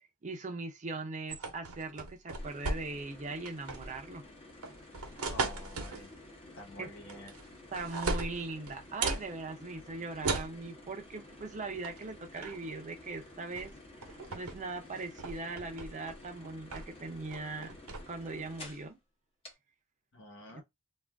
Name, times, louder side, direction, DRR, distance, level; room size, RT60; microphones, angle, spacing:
voice 1, 0.2-4.2 6.8-7.0 7.7-13.7 14.3-17.7 18.1-19.0 20.5-20.6, right 3 dB, 35° right, 0.5 m, -40 dB
sound 1, 1.3-3.1 3.5-4.0 4.6-6.1 7.1-7.5 7.7-9.3 10.2-10.6 11.8-12.0 12.4-12.7 13.6-13.7 14.0-14.6 15.0-16.2 16.7-17.0 17.3-18.0, right 3 dB, 85° right, 0.8 m, -36 dB
sound 2, 2.4-18.9 19.4-19.5, left 2 dB, 25° left, 0.8 m, -52 dB
voice 2, 5.3-6.1 6.6-7.3 20.1-20.6, left 1 dB, 60° left, 1.0 m, -49 dB
2.5 x 2.3 x 3.3 m
head